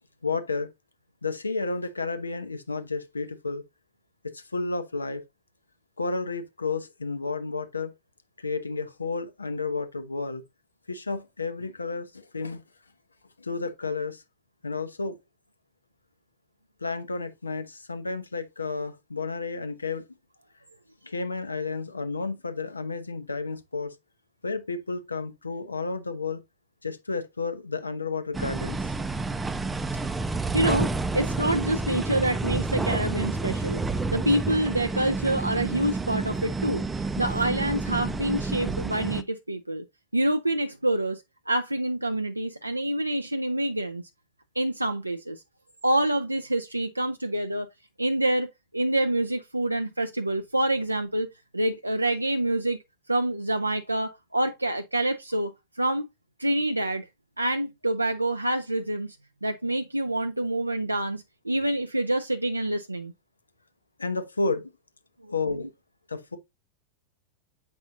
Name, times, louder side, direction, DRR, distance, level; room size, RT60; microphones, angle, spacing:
voice 1, 0.2-0.7 1.2-3.6 4.2-5.2 6.0-7.9 8.4-10.4 10.9-12.6 13.4-14.2 14.6-15.2 16.8-20.1 21.0-23.9 24.4-26.4 26.8-28.9 64.0-64.7 65.3-65.7 66.1-66.4, left 4 dB, 80° left, 0.8 m, -31 dB
sound 1, 28.3-39.2, right 3 dB, 10° right, 0.5 m, -29 dB
voice 2, 30.5-33.8 34.1-39.8 40.1-44.0 44.6-45.4 45.8-47.7 48.0-51.3 51.5-52.8 53.1-56.1 56.4-57.1 57.4-59.2 59.4-63.1 65.2-65.3, right 1 dB, 85° right, 0.4 m, -27 dB
7.9 x 5.3 x 2.6 m
figure-of-eight pair, 90°, 0 cm